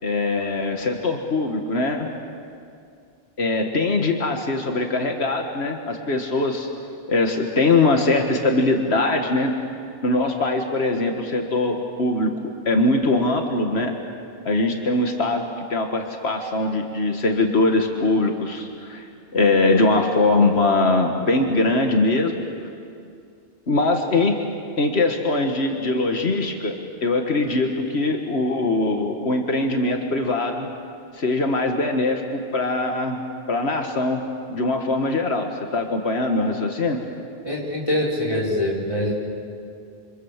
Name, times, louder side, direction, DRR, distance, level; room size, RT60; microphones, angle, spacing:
voice 1, 0.0-2.1 3.4-6.7 7.1-9.5 10.0-14.0 14.5-22.4 23.7-24.4 24.8-30.7 31.1-33.2 33.5-34.2 34.5-37.1, left 2 dB, 90° left, 3 dB, 1.9 m, -22 dB
voice 2, 37.4-39.1, left 1 dB, 30° left, -4 dB, 5.1 m, -24 dB
28.0 x 26.0 x 7.4 m, 2.4 s
omnidirectional pair, 1.1 m